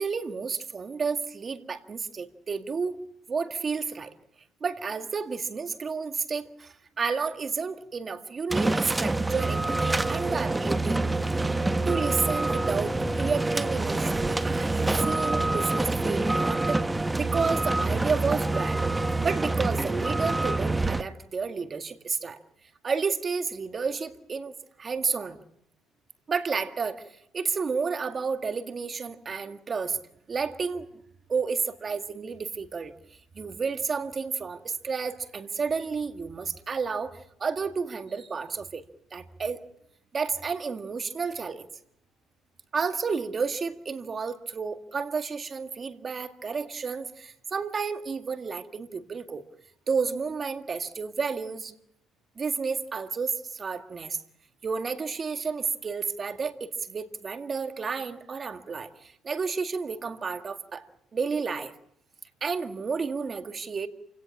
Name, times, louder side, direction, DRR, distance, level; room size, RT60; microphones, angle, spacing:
voice 1, 0.0-3.0 3.3-4.1 4.6-11.0 11.9-16.8 17.2-18.8 19.2-22.4 22.8-24.5 24.8-25.4 26.3-27.0 27.3-30.0 30.3-30.9 31.3-32.9 33.4-38.8 39.1-39.6 40.1-41.6 42.7-49.4 49.9-51.7 52.4-54.2 54.6-61.7 62.4-63.9, right 5 dB, 35° right, 7 dB, 1.9 m, -31 dB
sound 1, 8.5-21.0, right 2 dB, 10° right, 0.9 m, -26 dB
28.0 x 17.5 x 7.3 m, 0.73 s
cardioid pair, 95°, 0 cm